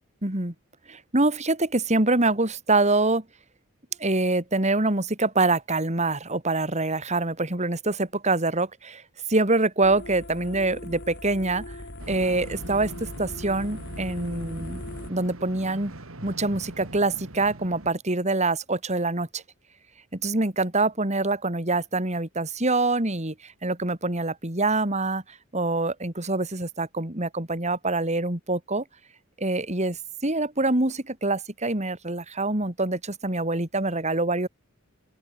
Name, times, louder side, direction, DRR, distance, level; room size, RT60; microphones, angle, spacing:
voice 1, 0.2-0.5 0.9-3.2 4.0-9.0 9.3-11.8 12.1-14.8 15.1-15.9 16.2-19.4 20.1-28.8 29.4-34.5, right 2 dB, 35° right, 2.7 m, -25 dB
sound 1, 9.8-15.1, left 1 dB, 55° left, 4.4 m, -39 dB
sound 2, 12.0-17.9, right 1 dB, 75° right, 2.6 m, -42 dB
open air
head